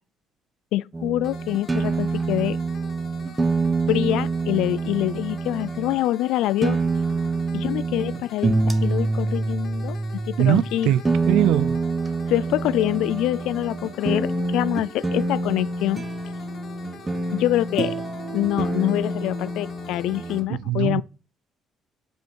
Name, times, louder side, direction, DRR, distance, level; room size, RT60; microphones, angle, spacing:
voice 1, 0.7-2.6 3.9-6.8 7.5-10.0 10.3-10.9 12.3-16.0 17.3-18.0 18.3-21.0, left 14 dB, 85° left, 0.4 m, -25 dB
sound 1, 0.9-6.0 6.6-20.4, right 3 dB, 15° right, 0.9 m, -26 dB
sound 2, 1.2-20.4, left 6 dB, 35° left, 1.2 m, -46 dB
voice 2, 10.4-11.8 20.5-21.0, right 13 dB, 80° right, 0.4 m, -22 dB
7.5 x 5.4 x 6.3 m
cardioid pair, 175°, 0 cm